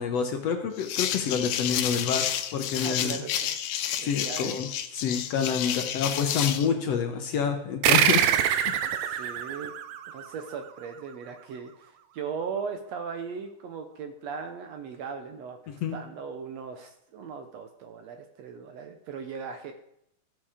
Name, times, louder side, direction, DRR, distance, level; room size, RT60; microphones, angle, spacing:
voice 1, 0.0-3.2 4.0-8.7 9.1-9.2 15.8-16.0, left 7 dB, 65° left, 5 dB, 1.7 m, -28 dB
sound 1, 0.8-6.7, left 10 dB, 85° left, 2.3 m, -30 dB
voice 2, 2.8-3.6 4.0-4.6 8.8-9.7 10.1-19.7, right 6 dB, 70° right, 6 dB, 1.7 m, -38 dB
sound 2, 7.8-10.8, right 10 dB, 90° right, 2.4 m, -25 dB
14.0 x 7.6 x 5.0 m, 0.75 s
omnidirectional pair, 3.6 m